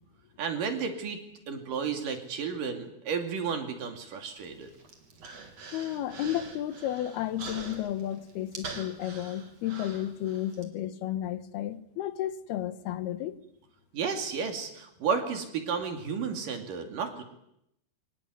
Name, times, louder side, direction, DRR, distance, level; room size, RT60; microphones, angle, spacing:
voice 1, 0.4-1.2 1.5-4.7 13.9-17.2, right 6 dB, 60° right, 4.1 m, -32 dB
Human voice, 4.4-10.6, right 4 dB, 45° right, 4.1 m, -45 dB
voice 2, 5.7-13.4, left 12 dB, 90° left, 3.2 m, -33 dB
24.5 x 19.5 x 9.6 m
omnidirectional pair, 4.4 m